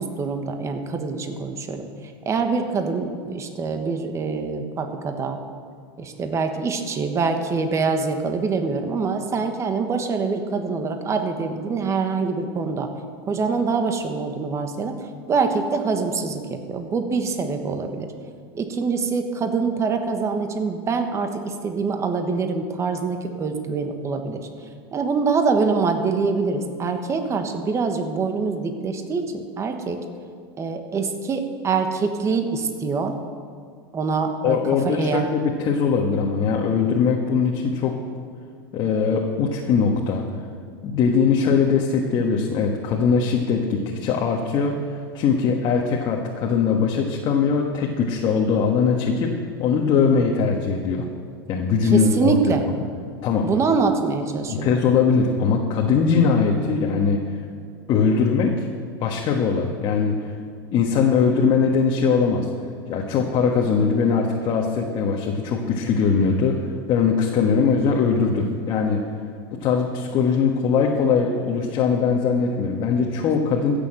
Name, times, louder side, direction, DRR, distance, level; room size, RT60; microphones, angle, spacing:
voice 1, 0.0-1.9 2.2-5.4 6.0-12.9 13.3-18.1 18.5-24.4 24.9-30.0 30.6-33.2 33.9-35.3 51.8-52.6 53.4-54.8, right 4 dB, 25° right, 6 dB, 1.3 m, -24 dB
voice 2, 34.4-38.0 38.7-40.2 40.8-49.3 49.6-51.1 51.5-52.9 53.2-53.5 54.5-57.2 57.9-58.6 59.0-60.3 60.7-62.5 62.9-69.0 69.5-73.8, left 5 dB, 40° left, 0 dB, 1.5 m, -21 dB
15.5 x 7.0 x 7.8 m, 2.1 s
supercardioid pair, 125°, 12 cm